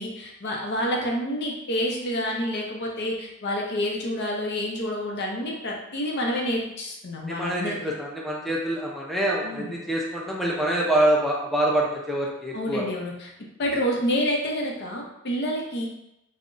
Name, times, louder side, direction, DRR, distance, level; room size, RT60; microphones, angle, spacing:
voice 1, 0.0-7.8 9.4-9.7 12.5-13.3 13.6-15.9, equal, 50° left, 0 dB, 0.6 m, -28 dB
voice 2, 7.3-12.8, right 1 dB, ahead, -3 dB, 0.5 m, -25 dB
2.4 x 2.1 x 3.7 m, 0.85 s
head